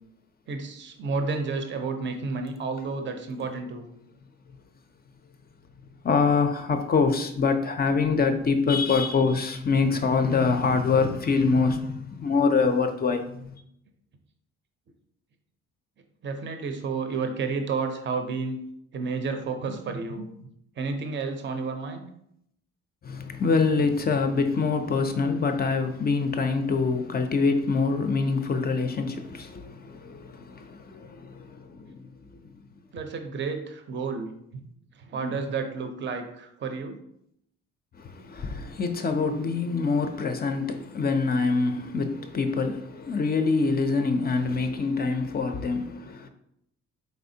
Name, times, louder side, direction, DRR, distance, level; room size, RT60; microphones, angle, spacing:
voice 1, 0.5-3.9 16.2-18.6 18.9-20.5 20.8-22.1 32.9-34.6 34.9-37.0, right 4 dB, 40° right, 0.6 m, -31 dB
voice 2, 6.0-13.5 23.0-32.0 38.0-46.3, left 4 dB, 30° left, 0.4 m, -25 dB
4.2 x 3.4 x 2.7 m
cardioid pair, 90°, 30 cm